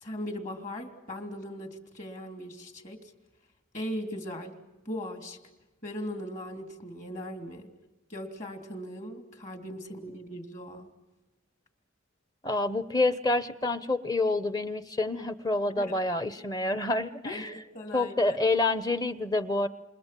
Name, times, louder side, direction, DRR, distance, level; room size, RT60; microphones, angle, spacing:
voice 1, 0.0-3.1 3.7-4.5 4.8-5.4 5.8-7.7 8.1-10.9 15.7-16.0 17.2-18.4, equal, 40° left, 4 dB, 3.0 m, -39 dB
voice 2, 12.4-17.5 17.9-19.7, left 2 dB, 20° left, 12 dB, 0.9 m, -28 dB
28.5 x 26.0 x 7.6 m, 1.0 s
head